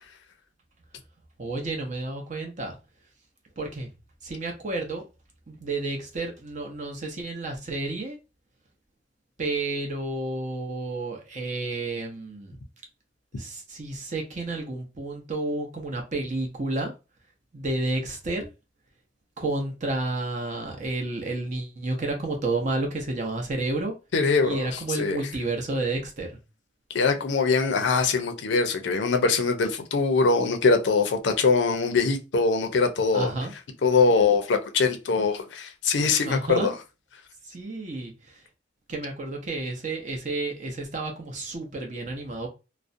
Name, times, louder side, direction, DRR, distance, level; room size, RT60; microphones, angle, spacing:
voice 1, 1.4-2.8 3.6-3.9 4.2-5.0 5.5-8.2 9.4-12.6 13.4-16.9 17.5-18.5 19.4-23.9 24.4-26.4 33.1-33.5 36.3-36.8 37.4-38.4 38.9-42.5, right 2 dB, 40° right, 0.7 m, -31 dB
voice 2, 24.1-24.7 25.0-25.2 26.9-33.3 33.8-36.7, left 4 dB, 70° left, 0.5 m, -22 dB
2.4 x 2.1 x 2.5 m
head